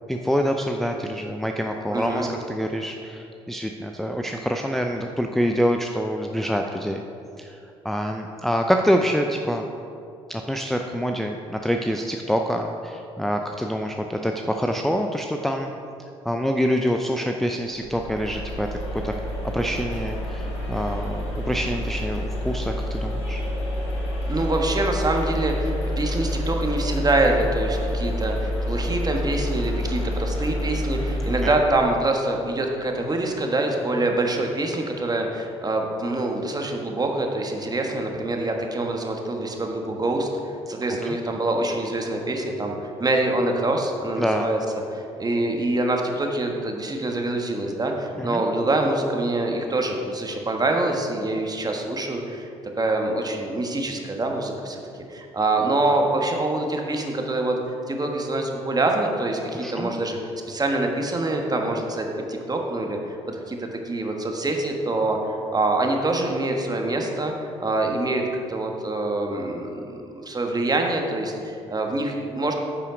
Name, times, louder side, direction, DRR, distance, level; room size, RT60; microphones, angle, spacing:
voice 1, 0.1-7.0 7.4-7.6 7.8-9.6 10.3-15.7 16.2-18.7 19.0-19.2 19.5-23.4 31.4-31.5 41.1-41.2 44.2-44.5 48.2-48.4 59.5-59.9, equal, ahead, 3 dB, 0.5 m, -26 dB
voice 2, 1.9-2.3 24.3-40.3 40.7-44.6 44.9-52.5 52.8-57.6 57.9-60.2 60.5-68.2 68.5-70.0 70.2-72.5, right 2 dB, 25° right, 2 dB, 1.4 m, -25 dB
sound 1, 17.7-31.5, equal, 85° left, 1.5 m, -28 dB
9.2 x 5.7 x 5.0 m, 2.7 s
hypercardioid pair, 50°, 14 cm